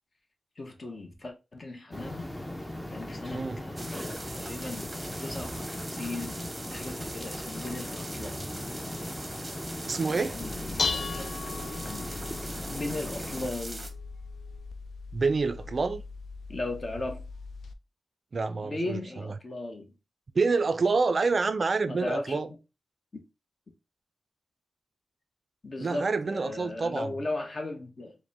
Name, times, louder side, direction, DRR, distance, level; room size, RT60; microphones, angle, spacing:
voice 1, 0.6-2.3 2.9-4.0 4.3-6.4 6.7-8.5 10.2-11.3 11.8-12.2 12.7-13.8 16.5-17.2 18.6-19.9 21.9-22.4 23.1-23.2 25.6-28.2, left 2 dB, 40° left, 0.8 m, -37 dB
sound 1, 1.9-13.5, left 1 dB, 10° left, 0.6 m, -39 dB
sound 2, 3.8-13.9, right 1 dB, 15° right, 0.8 m, -41 dB
voice 2, 9.9-10.4 15.1-16.0 18.3-19.3 20.4-22.5 25.8-27.1, right 4 dB, 50° right, 0.3 m, -27 dB
Dishes pots and pans, 10.3-17.7, left 4 dB, 75° left, 0.4 m, -37 dB
4.9 x 2.1 x 3.4 m
wide cardioid pair, 95°, 0 cm